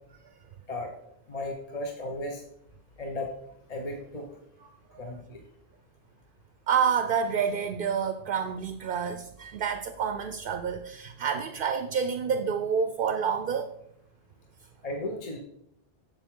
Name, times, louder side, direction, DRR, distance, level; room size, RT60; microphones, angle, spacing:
voice 1, 1.3-2.4 3.0-3.3 3.7-4.3 5.0-5.4 14.8-15.4, left 1 dB, 40° left, 1 dB, 1.0 m, -35 dB
voice 2, 4.6-5.0 6.7-13.7, right 7 dB, 65° right, 8 dB, 0.7 m, -28 dB
7.4 x 7.2 x 3.7 m, 0.76 s
omnidirectional pair, 1.0 m